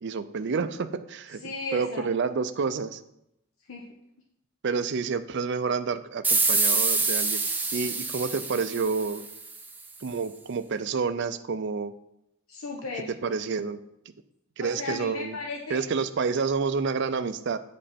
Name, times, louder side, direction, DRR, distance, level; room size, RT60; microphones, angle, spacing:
voice 1, 0.0-3.0 4.6-9.3 10.0-11.9 13.2-13.8 14.6-15.4 15.7-17.6, right 5 dB, 55° right, 11 dB, 0.5 m, -29 dB
voice 2, 1.3-2.1 3.7-3.9 12.5-13.2 14.6-15.8, left 3 dB, 80° left, -1 dB, 0.9 m, -35 dB
sound 1, 6.2-9.6, right 3 dB, 10° right, 0.7 m, -26 dB
8.7 x 5.3 x 4.2 m, 0.83 s
head